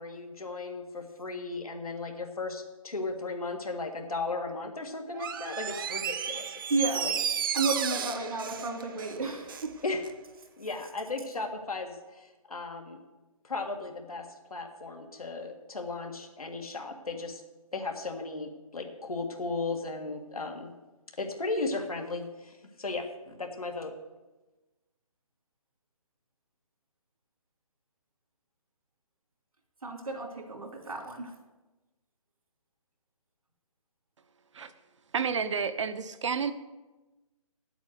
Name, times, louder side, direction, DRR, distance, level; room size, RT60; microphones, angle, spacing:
voice 1, 0.0-6.5 7.0-7.1 9.8-10.0 10.6-13.0 13.4-17.4 17.7-20.7 21.2-23.9, left 3 dB, 85° left, 2 dB, 2.0 m, -36 dB
Door, 5.1-9.7 10.0-10.1, right 8 dB, 40° right, 0.6 m, -33 dB
voice 2, 6.7-7.1 7.5-9.8 29.8-31.3, right 3 dB, 80° right, 2 dB, 3.1 m, -32 dB
voice 3, 35.1-36.5, right 6 dB, 55° right, 12 dB, 0.9 m, -30 dB
8.9 x 8.2 x 8.0 m, 1.1 s
figure-of-eight pair, 150°, 18 cm